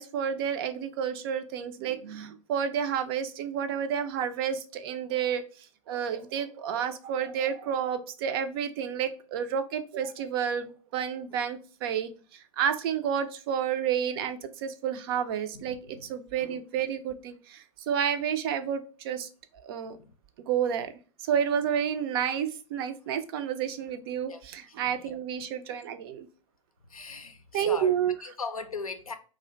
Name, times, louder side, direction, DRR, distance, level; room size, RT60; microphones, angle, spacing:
voice 1, 0.0-20.0 20.5-26.3 27.5-28.1, right 8 dB, 45° right, 0.4 m, -30 dB
voice 2, 15.5-16.1 20.0-20.1 24.3-24.4 24.7-25.1 26.9-29.1, left 4 dB, 90° left, 0.4 m, -39 dB
2.4 x 2.1 x 3.7 m
figure-of-eight pair, 100°, 18 cm